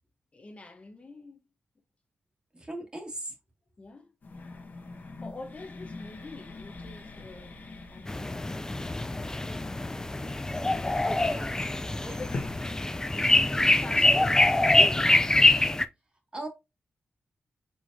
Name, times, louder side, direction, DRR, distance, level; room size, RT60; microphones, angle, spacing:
voice 1, 0.3-1.4 3.8-4.1 5.2-7.6 7.9-8.6 10.0-10.4 10.8-11.4 12.0-12.5 13.7-15.6, left 2 dB, 35° left, 0.9 m, -45 dB
voice 2, 2.5-3.3 11.0-11.1 12.0-12.2 13.1-13.3 16.3-16.5, right 1 dB, 25° right, 1.9 m, -38 dB
sound 1, 4.2-12.8, left 3 dB, 50° left, 1.3 m, -44 dB
sound 2, 8.1-15.9, left 2 dB, 15° left, 0.4 m, -24 dB
4.7 x 3.9 x 2.7 m
cardioid pair, 75°, 4 cm